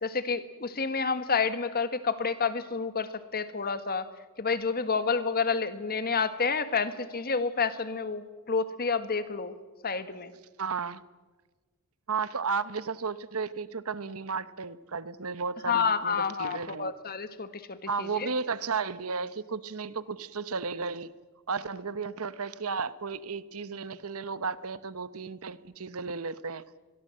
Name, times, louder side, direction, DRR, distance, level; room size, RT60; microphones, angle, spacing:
voice 1, 0.0-4.1 4.4-9.5 9.8-10.3 15.7-18.3, left 5 dB, 45° left, 11 dB, 1.5 m, -29 dB
voice 2, 10.6-11.0 12.1-16.9 17.9-21.1 21.5-26.6, right 5 dB, 70° right, 15 dB, 1.0 m, -34 dB
26.5 x 22.0 x 7.7 m, 1.3 s
head